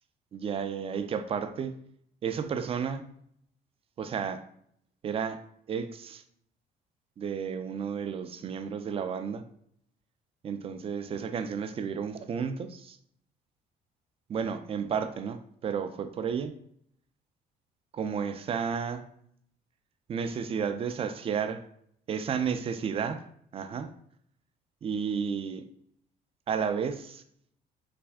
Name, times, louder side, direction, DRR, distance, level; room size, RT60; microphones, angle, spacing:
voice 1, 0.3-1.7 2.2-3.2 4.0-4.4 5.0-6.2 7.2-9.4 10.4-13.0 14.3-16.6 17.9-19.0 20.1-21.7 22.1-23.9 24.8-25.7 26.5-27.2, right 6 dB, 35° right, 0.4 m, -32 dB
3.3 x 2.6 x 3.4 m
cardioid pair, 110°, 17 cm